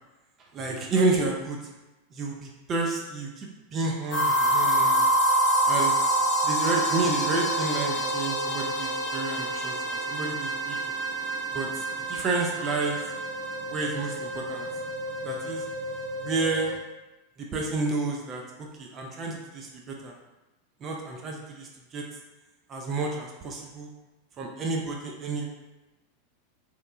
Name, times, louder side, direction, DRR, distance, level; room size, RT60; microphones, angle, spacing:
voice 1, 0.5-1.6 2.1-5.0 5.7-6.0 6.4-10.9 11.5-13.0 13.7-14.7 15.2-15.6 16.2-16.7 17.4-20.1 20.8-22.0 22.7-23.9 24.4-25.5, right 3 dB, 35° right, 0 dB, 0.4 m, -30 dB
sound 1, 4.1-16.8, right 1 dB, 40° left, 0.6 m, -27 dB
2.9 x 2.1 x 2.3 m, 1.1 s
figure-of-eight pair, 90°, 0 cm